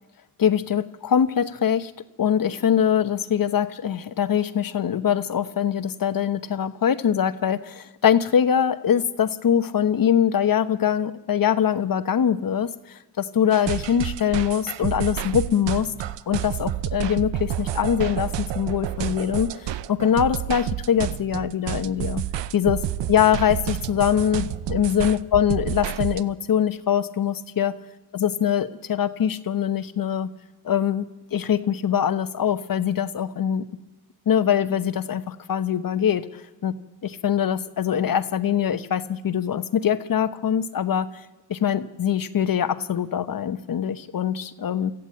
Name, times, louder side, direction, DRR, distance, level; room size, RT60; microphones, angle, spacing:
voice 1, 0.4-1.9 2.2-15.9 16.3-22.2 22.5-22.8 23.1-27.8 28.1-30.3 30.6-31.1 31.3-33.6 34.3-36.2 36.6-36.7 37.0-41.1 41.5-44.9, left 9 dB, 50° left, 12 dB, 1.0 m, -23 dB
sound 1, 13.5-26.2, right 12 dB, 75° right, 0.7 m, -29 dB
24.0 x 14.0 x 8.8 m, 1.1 s
cardioid pair, 105°, 43 cm